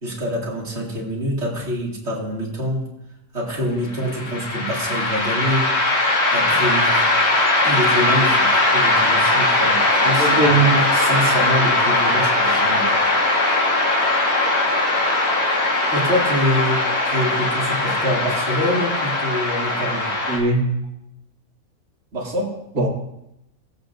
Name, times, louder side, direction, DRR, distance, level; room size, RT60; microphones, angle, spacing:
voice 1, 0.0-2.8 3.3-5.7 6.3-7.1 7.6-13.0 15.9-20.1 22.1-22.5, equal, 45° right, -4 dB, 2.7 m, -25 dB
sound 1, 4.0-20.4, left 2 dB, 80° left, 2.3 m, -19 dB
voice 2, 10.2-10.8 20.3-20.7 22.8-22.9, right 3 dB, 75° right, -4 dB, 2.5 m, -19 dB
20.0 x 8.1 x 2.6 m, 0.83 s
omnidirectional pair, 1.6 m